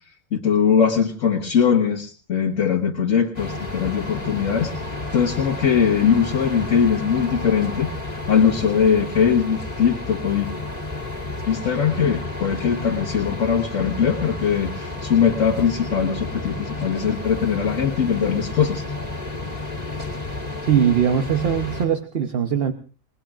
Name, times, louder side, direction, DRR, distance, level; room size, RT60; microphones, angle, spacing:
voice 1, 0.3-7.9 8.3-10.5 11.5-18.8, left 7 dB, 70° left, -1 dB, 1.6 m, -21 dB
sound 1, 3.3-21.9, left 2 dB, 30° left, 2.9 m, -31 dB
voice 2, 20.6-22.7, right 8 dB, 50° right, 7 dB, 1.1 m, -20 dB
29.5 x 19.5 x 2.5 m, 0.35 s
omnidirectional pair, 1.4 m